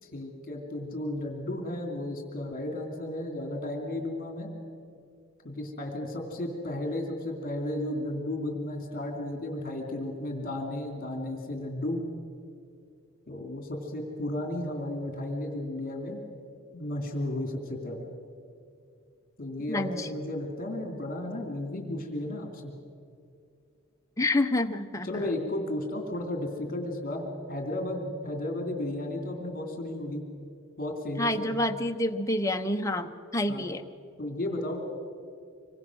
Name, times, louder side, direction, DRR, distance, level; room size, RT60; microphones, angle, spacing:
voice 1, 0.0-4.5 5.4-12.1 13.3-16.2 16.7-18.1 19.4-22.7 25.0-30.2 30.8-31.5 33.5-33.7 34.2-34.9, left 1 dB, 40° left, 3 dB, 2.8 m, -34 dB
voice 2, 19.7-20.1 24.2-25.1 31.2-33.8, left 1 dB, 15° left, 5 dB, 0.8 m, -28 dB
25.5 x 22.5 x 6.2 m, 2.4 s
head